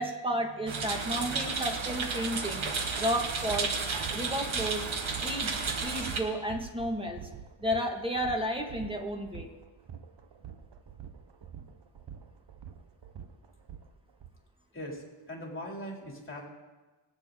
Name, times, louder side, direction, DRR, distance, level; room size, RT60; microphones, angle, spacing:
voice 1, 0.0-2.7 3.0-3.7 4.1-4.9 5.2-5.5 5.8-7.2 7.6-9.5, equal, 10° right, 2 dB, 1.8 m, -32 dB
sound 1, 0.7-6.2, right 4 dB, 85° right, 1.6 m, -32 dB
sound 2, 3.4-14.3, right 8 dB, 60° right, 0.9 m, -47 dB
voice 2, 14.7-16.4, equal, 25° left, -1 dB, 3.1 m, -40 dB
22.0 x 8.9 x 3.8 m, 1.2 s
wide cardioid pair, 95°, 47 cm